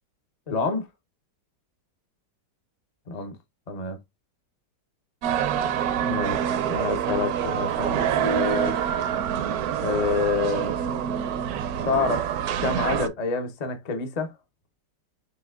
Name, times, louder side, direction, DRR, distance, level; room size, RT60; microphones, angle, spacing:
voice 1, 0.5-0.9 3.1-3.3 3.7-4.0 6.0-8.8 9.8-10.7 11.8-12.3 12.6-14.3, left 5 dB, 55° left, 0.4 m, -28 dB
sound 1, 5.2-13.1, right 9 dB, 70° right, 0.9 m, -26 dB
6.8 x 2.7 x 2.3 m
omnidirectional pair, 1.9 m